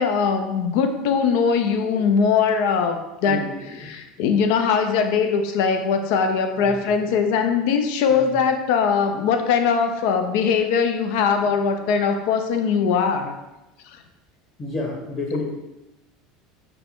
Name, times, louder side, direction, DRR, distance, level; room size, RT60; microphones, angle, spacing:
voice 1, 0.0-3.4 3.9-13.4 13.9-14.0, left 6 dB, 70° left, 6 dB, 0.5 m, -21 dB
voice 2, 1.6-2.2 3.2-3.9 6.6-7.3 8.1-8.4 11.3-11.9 14.6-15.4, left 2 dB, 40° left, -1 dB, 1.6 m, -33 dB
5.2 x 2.2 x 4.4 m, 0.98 s
hypercardioid pair, 90°, 0 cm